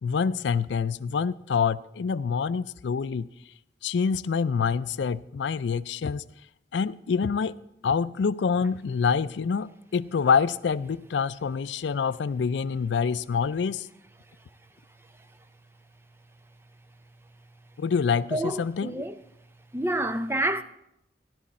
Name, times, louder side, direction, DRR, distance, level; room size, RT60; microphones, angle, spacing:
voice 1, 0.0-3.3 3.8-6.2 6.7-7.5 7.8-13.9 17.8-19.0, left 6 dB, 85° left, 0.4 m, -26 dB
voice 2, 18.3-19.2 19.7-20.6, right 1 dB, 15° right, 0.5 m, -28 dB
15.5 x 11.0 x 4.2 m
head